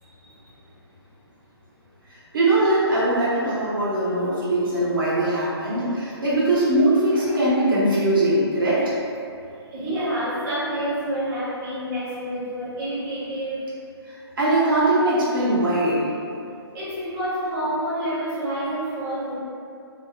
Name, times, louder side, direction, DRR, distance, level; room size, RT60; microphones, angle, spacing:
voice 1, 0.0-0.5 7.1-7.5 9.7-13.7 16.7-19.3, right 1 dB, 20° right, -12 dB, 0.9 m, -28 dB
voice 2, 2.1-9.0 14.4-16.1, right 1 dB, 55° right, -8 dB, 0.9 m, -21 dB
3.4 x 2.0 x 3.2 m, 2.5 s
figure-of-eight pair, 145°, 14 cm